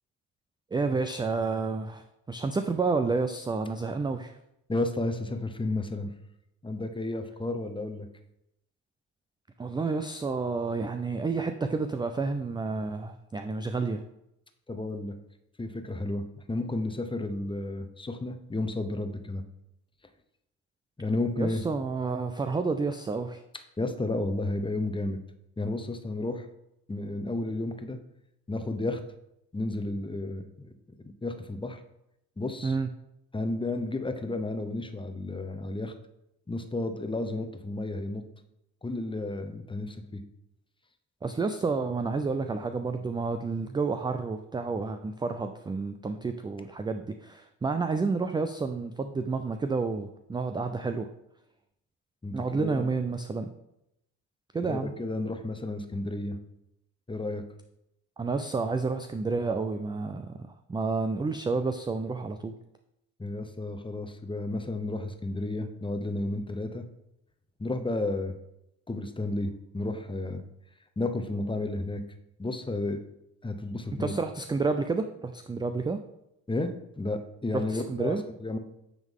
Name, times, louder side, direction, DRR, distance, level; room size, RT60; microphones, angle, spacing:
voice 1, 0.7-4.3 9.6-14.0 21.4-23.4 32.6-32.9 41.2-51.1 52.3-53.5 54.5-54.9 58.2-62.5 74.0-76.0 77.5-78.2, right 4 dB, 10° right, 8 dB, 0.3 m, -30 dB
voice 2, 4.7-6.1 6.6-8.1 14.7-15.1 15.6-19.4 21.0-21.6 23.8-25.2 25.6-26.5 26.9-28.0 28.5-29.0 29.5-30.7 31.0-31.8 32.4-32.8 33.3-35.9 36.5-38.2 38.8-40.2 52.2-52.9 54.7-56.4 57.1-57.4 63.2-66.8 67.6-68.3 68.9-70.4 71.0-72.0 72.4-73.0 73.4-74.1 76.5-78.2 78.4-78.6, left 2 dB, 15° left, 7 dB, 0.7 m, -32 dB
9.2 x 3.7 x 3.6 m, 0.83 s
supercardioid pair, 65°, 40 cm